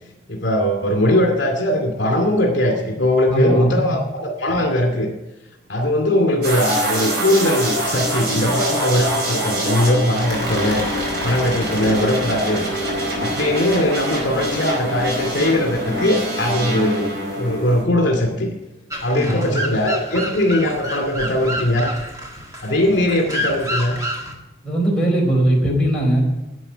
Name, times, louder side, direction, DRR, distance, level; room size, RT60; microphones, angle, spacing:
voice 1, 0.3-5.1 5.7-10.8 11.2-12.7 13.2-17.1 17.3-18.5 19.0-21.9 22.6-24.0, left 1 dB, 70° left, 2 dB, 2.3 m, -20 dB
voice 2, 3.3-3.9 19.1-19.6 24.6-26.2, right 1 dB, 5° left, -4 dB, 4.5 m, -19 dB
sound 1, 6.4-17.8, right 1 dB, 55° right, 5.0 m, -24 dB
sound 2, 18.9-24.3, equal, 20° right, 1.9 m, -29 dB
11.0 x 8.7 x 9.9 m, 1.0 s
head